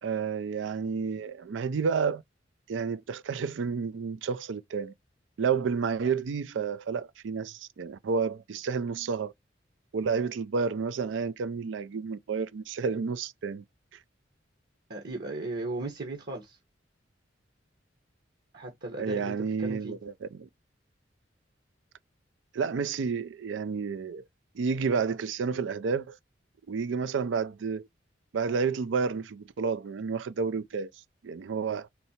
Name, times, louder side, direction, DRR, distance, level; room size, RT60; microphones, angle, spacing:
voice 1, 0.0-2.2 2.7-4.9 5.4-9.3 9.9-13.6 19.0-20.5 22.5-24.2 24.5-26.2 26.7-27.9 28.3-30.9 31.2-31.9, right 5 dB, 80° right, 0.4 m, -30 dB
voice 2, 14.9-16.6 18.5-20.0, right 2 dB, 60° right, 1.2 m, -36 dB
4.2 x 2.8 x 4.3 m
head